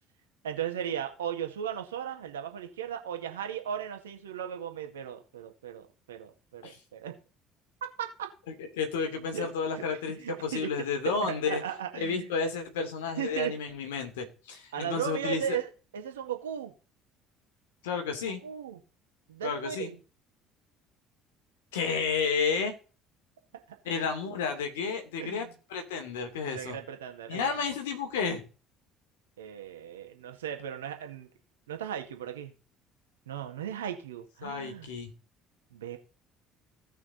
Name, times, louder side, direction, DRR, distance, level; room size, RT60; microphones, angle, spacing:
voice 1, 0.4-7.1 8.0-8.3 9.3-9.8 10.1-10.7 11.2-12.3 13.2-13.5 14.7-15.7 15.9-16.7 18.4-18.8 19.3-20.0 25.2-25.5 26.4-27.5 29.4-31.3 31.7-32.5 33.3-34.9 35.7-36.0, right 9 dB, 80° right, 5 dB, 1.9 m, -36 dB
voice 2, 8.7-11.6 12.0-15.6 17.8-18.4 19.4-19.9 21.7-22.7 23.8-26.8 27.3-28.4 34.4-35.1, left 5 dB, 75° left, 4 dB, 2.7 m, -31 dB
17.0 x 5.9 x 4.2 m, 0.35 s
hypercardioid pair, 60°, 0 cm